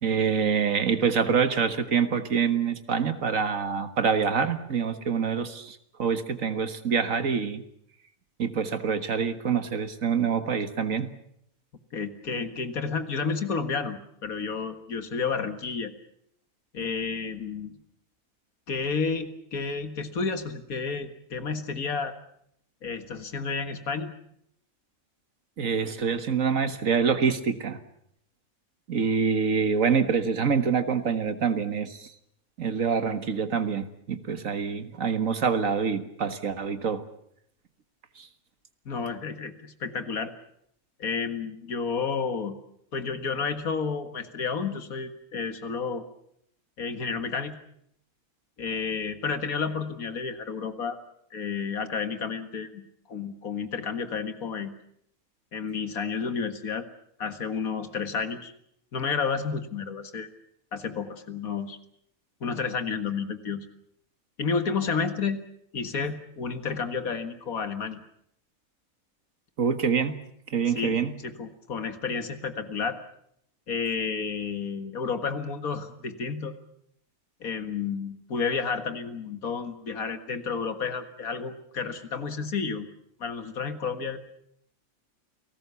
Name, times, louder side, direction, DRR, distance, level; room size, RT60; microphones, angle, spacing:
voice 1, 0.0-7.6 8.4-11.1 25.6-27.8 28.9-32.1 32.6-37.0 38.2-38.3 69.6-70.2 70.5-71.1, right 6 dB, 70° right, 10 dB, 1.9 m, -26 dB
voice 2, 11.9-15.9 16.7-17.7 18.7-22.1 22.8-24.1 38.9-40.3 41.0-42.5 42.9-46.0 46.8-47.6 48.6-51.0 51.3-54.8 55.5-56.9 57.2-58.5 58.9-60.3 60.7-61.8 62.4-63.7 64.4-65.4 65.7-68.0 70.7-73.0 73.7-76.5 77.4-82.9 83.2-84.2, left 5 dB, 80° left, 9 dB, 2.2 m, -31 dB
29.0 x 19.0 x 7.0 m, 0.71 s
omnidirectional pair, 1.5 m